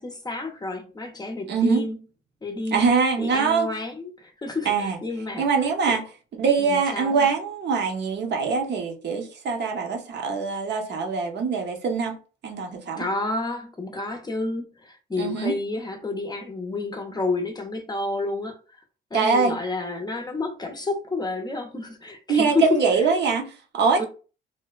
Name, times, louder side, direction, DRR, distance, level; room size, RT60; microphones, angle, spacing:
voice 1, 0.0-2.0 2.4-2.8 3.2-5.5 5.9-6.0 6.6-7.3 13.0-18.6 19.1-22.7 24.0-24.1, left 3 dB, 20° left, 0.5 m, -30 dB
voice 2, 1.5-1.8 2.7-3.8 4.6-5.0 5.4-6.0 6.4-12.2 12.4-13.0 15.2-15.5 19.1-19.6 22.3-24.0, right 5 dB, 60° right, 0.8 m, -23 dB
3.2 x 2.1 x 2.3 m
cardioid pair, 90°, 20 cm